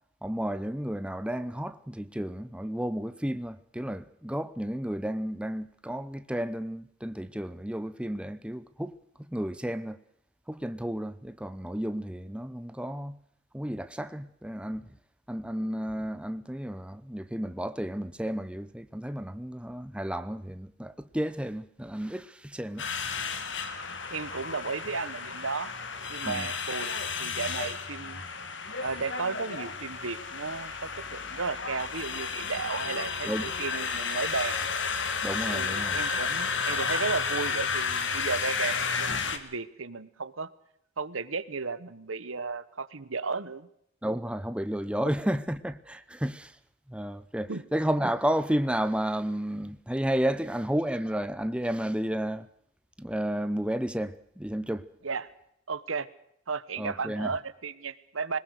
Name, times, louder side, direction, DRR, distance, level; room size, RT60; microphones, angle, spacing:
voice 1, 0.2-8.9 9.3-10.0 10.5-13.2 13.5-14.8 15.3-22.8 26.2-26.5 33.2-33.4 35.2-36.0 44.0-46.6 46.9-52.5 53.0-54.9 56.8-57.4, equal, 5° right, 0.8 m, -32 dB
sound 1, 22.8-39.4, left 5 dB, 60° left, 2.1 m, -32 dB
voice 2, 24.1-25.7 26.1-28.2 28.8-34.7 35.4-40.5 41.0-43.7 47.5-47.6 55.0-55.3 55.7-56.1 56.5-58.4, right 4 dB, 90° right, 1.2 m, -34 dB
22.0 x 20.0 x 6.5 m
head